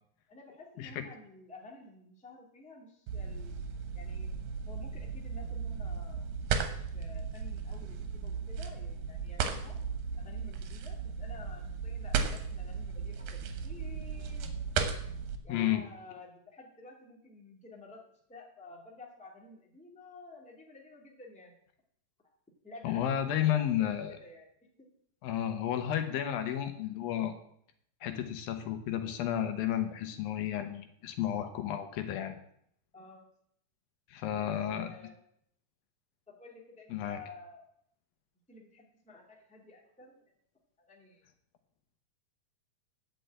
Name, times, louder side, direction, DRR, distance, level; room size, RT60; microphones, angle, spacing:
voice 1, 0.3-4.3 4.6-6.3 6.6-9.8 10.2-14.5 15.4-18.0 18.3-21.6 22.6-24.5 24.8-24.9 32.9-33.3 34.3-35.2 36.3-37.7 38.5-40.1 40.8-41.3, left 2 dB, 5° left, -1 dB, 1.3 m, -52 dB
sound 1, 3.1-15.4, right 6 dB, 80° right, 2.9 m, -36 dB
voice 2, 15.5-15.8 22.8-24.2 25.2-27.3 28.0-32.4 34.1-34.9 36.9-37.2, left 11 dB, 85° left, 7 dB, 2.8 m, -32 dB
10.0 x 6.1 x 8.1 m, 0.69 s
omnidirectional pair, 4.1 m